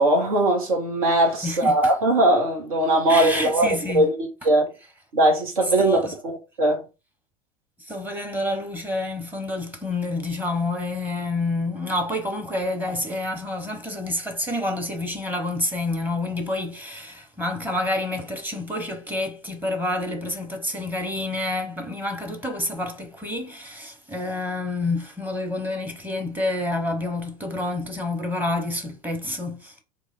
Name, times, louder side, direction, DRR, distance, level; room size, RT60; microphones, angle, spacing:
voice 1, 0.0-3.7 3.9-4.7 5.1-6.0 6.2-6.9, right 1 dB, 75° right, 1.4 m, -20 dB
voice 2, 1.4-1.9 3.1-4.1 5.8-6.1 7.8-29.7, left 2 dB, 10° right, 1.0 m, -28 dB
3.5 x 2.5 x 3.4 m
figure-of-eight pair, 80°, 18 cm